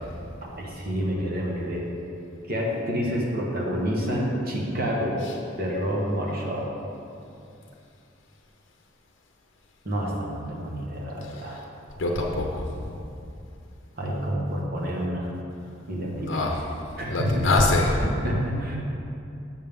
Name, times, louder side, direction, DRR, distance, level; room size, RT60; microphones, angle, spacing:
voice 1, 0.4-1.8 2.5-5.2 5.6-6.7 9.8-11.6 14.0-15.3 15.9-16.5 17.0-17.5 18.0-18.8, equal, 50° right, -3 dB, 1.2 m, -28 dB
voice 2, 12.0-12.9 16.3-16.6 17.1-18.0, left 2 dB, 70° left, 0 dB, 0.7 m, -24 dB
7.3 x 7.0 x 3.6 m, 2.6 s
head